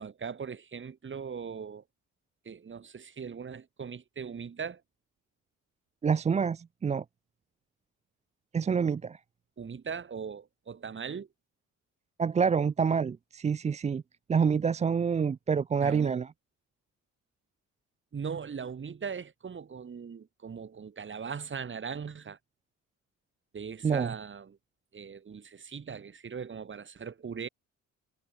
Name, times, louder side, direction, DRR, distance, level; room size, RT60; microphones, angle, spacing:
voice 1, 0.0-1.8 2.4-4.8 9.6-11.3 15.8-16.2 18.1-22.4 23.5-24.6 24.9-27.5, right 6 dB, 40° right, 3.2 m, -39 dB
voice 2, 6.0-7.0 8.5-9.2 12.2-14.0 14.3-16.3 23.8-24.1, right 6 dB, 25° right, 0.4 m, -27 dB
cardioid pair, 90°, 30 cm